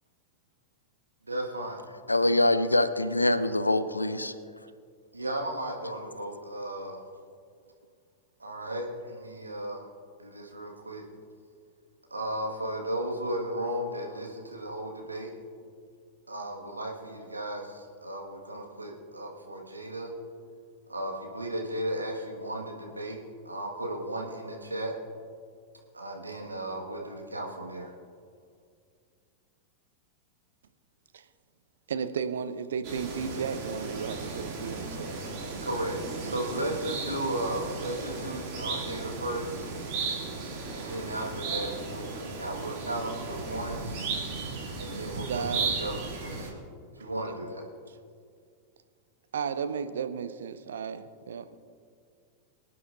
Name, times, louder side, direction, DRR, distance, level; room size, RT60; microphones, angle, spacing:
voice 1, 1.3-1.8 5.1-7.0 8.4-9.9 10.2-11.0 12.1-15.3 16.3-20.1 20.9-23.2 23.4-24.9 25.9-27.9 35.6-39.7 40.7-44.0 44.7-46.6 46.9-47.6, right 1 dB, 80° right, 0 dB, 1.6 m, -35 dB
voice 2, 2.1-4.3, left 2 dB, 85° left, 12 dB, 0.5 m, -24 dB
voice 3, 31.9-36.8 45.2-45.7 47.0-47.1 49.3-51.6, right 6 dB, 65° right, 11 dB, 0.6 m, -35 dB
sound 1, 32.8-46.5, right 4 dB, 45° right, 2.4 m, -35 dB
24.0 x 9.5 x 2.6 m, 2.2 s
figure-of-eight pair, 90°, 0 cm